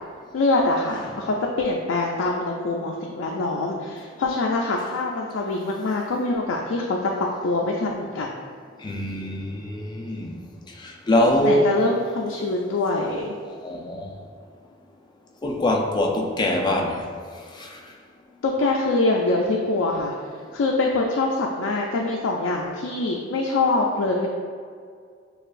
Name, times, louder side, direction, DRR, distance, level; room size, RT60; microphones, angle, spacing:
voice 1, 0.3-7.1 7.4-8.3 11.4-13.3 18.4-20.1 20.5-24.3, left 2 dB, 90° left, -1 dB, 0.4 m, -24 dB
voice 2, 8.8-10.4 10.8-11.7 13.5-14.1 15.4-17.1 17.6-17.8, left 1 dB, 25° left, 1 dB, 0.4 m, -23 dB
6.4 x 2.4 x 2.5 m, 2.1 s
head